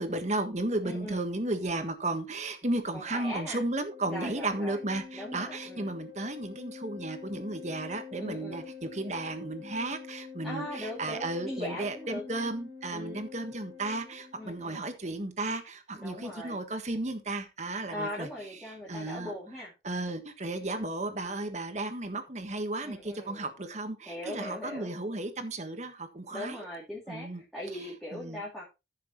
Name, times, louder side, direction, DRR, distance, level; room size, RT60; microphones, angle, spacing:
voice 1, 0.0-18.3 18.9-19.3 19.8-26.6 27.1-27.4 28.1-28.4, right 2 dB, 40° right, 1.5 m, -34 dB
voice 2, 0.8-1.2 2.9-3.6 4.1-4.8 5.1-5.9 8.2-8.7 10.4-12.5 12.9-13.2 14.3-14.9 15.9-16.6 17.9-19.7 22.8-23.5 24.0-25.0 26.3-28.6, left 1 dB, ahead, 2.7 m, -40 dB
Organ, 3.8-14.6, left 6 dB, 20° right, 2.2 m, -46 dB
14.0 x 6.7 x 3.1 m
head